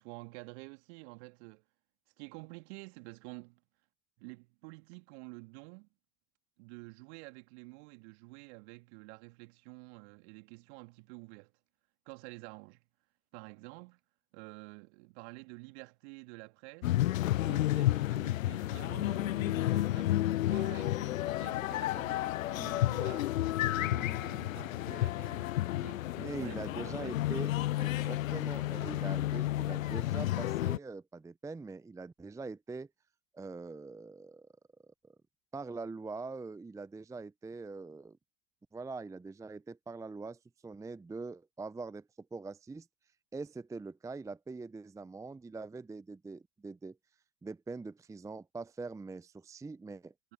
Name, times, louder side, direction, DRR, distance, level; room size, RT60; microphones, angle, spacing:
voice 1, 0.0-1.6 2.2-3.6 4.2-5.9 6.6-11.5 12.1-12.8 13.3-14.0 14.3-16.9 17.4-23.3 23.6-25.5 25.8-27.2 50.2-50.3, right 29 dB, 50° right, 2.4 m, -49 dB
sound 1, 16.8-30.8, left 15 dB, 70° left, 0.6 m, -31 dB
voice 2, 26.2-32.9 33.3-34.5 34.9-35.1 35.5-38.2 38.7-42.9 43.3-47.0 47.4-50.1, right 3 dB, 5° right, 0.8 m, -43 dB
figure-of-eight pair, 90°, 41 cm